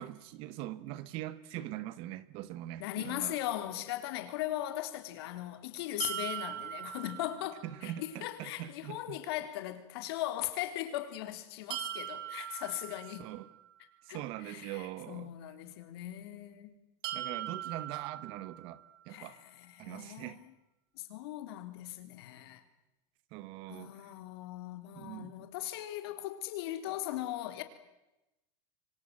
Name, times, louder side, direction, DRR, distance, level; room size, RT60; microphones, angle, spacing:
voice 1, 0.0-3.4 7.6-9.2 13.2-13.5 14.0-15.3 17.1-19.4 19.8-20.4 23.3-24.1 24.9-25.5, right 14 dB, 40° right, 1.1 m, -42 dB
voice 2, 2.8-13.2 14.1-14.8 15.1-16.7 19.1-20.3 21.0-22.6 23.7-27.6, left 14 dB, 60° left, 3.7 m, -39 dB
sound 1, 6.0-8.0 11.7-13.8 17.0-19.1, right 12 dB, 55° right, 2.1 m, -41 dB
27.5 x 24.5 x 7.7 m
supercardioid pair, 175°, 15 cm